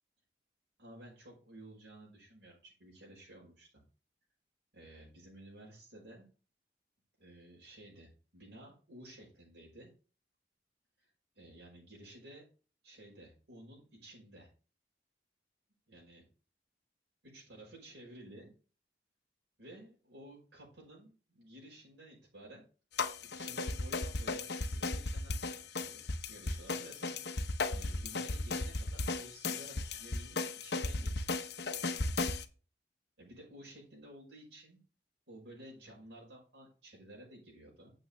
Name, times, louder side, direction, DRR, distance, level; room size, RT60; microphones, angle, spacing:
voice 1, 0.8-3.7 4.7-6.3 7.2-9.9 11.0-11.1 11.4-12.4 12.8-14.5 15.9-16.2 17.3-18.5 19.6-22.6 23.4-27.1 27.7-31.5 33.2-34.8 35.3-37.9, right 1 dB, 85° right, -3 dB, 5.4 m, -54 dB
sound 1, 23.0-32.4, left 3 dB, 70° left, 1.0 m, -35 dB
8.8 x 7.7 x 3.6 m, 0.35 s
head